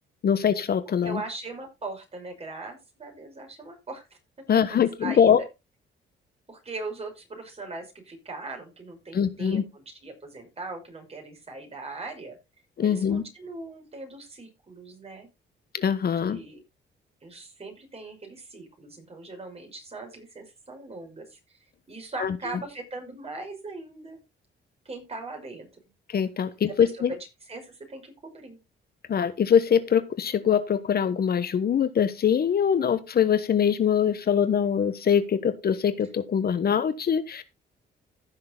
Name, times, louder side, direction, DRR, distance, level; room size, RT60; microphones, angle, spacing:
voice 1, 0.2-1.2 4.5-5.4 9.1-9.6 12.8-13.2 15.7-16.4 22.2-22.4 26.1-27.1 29.1-37.4, left 8 dB, 50° left, 12 dB, 1.2 m, -23 dB
voice 2, 1.0-4.2 4.7-5.3 6.5-12.4 12.8-15.3 16.0-16.6 17.2-21.6 21.9-24.2 24.8-25.7 26.7-27.2 27.5-28.6, right 3 dB, 30° right, 3 dB, 5.9 m, -40 dB
15.5 x 6.7 x 3.9 m, 0.26 s
cardioid pair, 90°, 20 cm